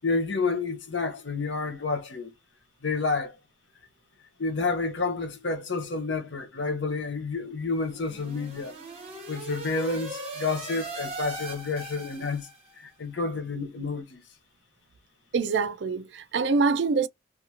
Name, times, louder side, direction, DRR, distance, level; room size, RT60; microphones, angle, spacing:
voice 1, 0.0-2.3 2.8-3.3 4.4-8.7 9.3-12.5 12.8-14.2, left 3 dB, 75° left, 0.9 m, -29 dB
sound 1, 7.7-12.8, right 2 dB, 35° right, 1.3 m, -39 dB
voice 2, 15.3-17.1, right 4 dB, 70° right, 0.4 m, -25 dB
2.5 x 2.5 x 2.8 m
head